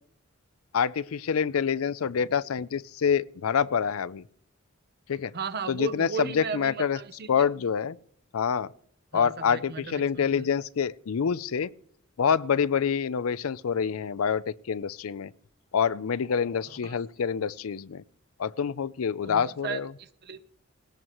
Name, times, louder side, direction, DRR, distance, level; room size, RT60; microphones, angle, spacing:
voice 1, 0.7-4.2 5.1-5.3 5.7-7.0 7.3-8.0 8.3-8.7 9.1-11.7 12.2-15.3 15.7-18.0 18.4-19.9, left 7 dB, 90° left, 0.5 m, -26 dB
voice 2, 5.3-7.5 9.1-10.5 16.6-17.0 19.2-20.5, right 6 dB, 50° right, 0.8 m, -36 dB
19.5 x 17.5 x 3.1 m
head